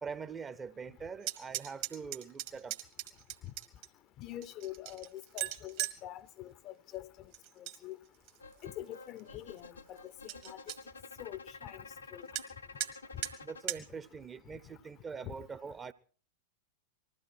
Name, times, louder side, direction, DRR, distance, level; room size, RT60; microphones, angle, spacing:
voice 1, 0.0-2.8 13.4-15.9, right 5 dB, 20° right, 0.8 m, -43 dB
sound 1, 1.2-3.9 4.4-6.0 7.3-7.8 8.1-8.6 9.2-9.3 9.6-9.7 10.0-10.1 10.3-10.8 12.4-12.5 12.8-12.9 13.2-13.3 13.7-13.8, right 14 dB, 45° right, 1.5 m, -38 dB
voice 2, 4.2-7.1 7.6-8.0 8.6-10.1 10.4-10.6 11.2-11.8 12.1-12.3 15.2-15.3, left 13 dB, 35° left, 0.7 m, -45 dB
sound 2, 8.4-13.7, left 3 dB, 75° left, 0.9 m, -50 dB
20.5 x 14.5 x 4.6 m
figure-of-eight pair, 90°, 0 cm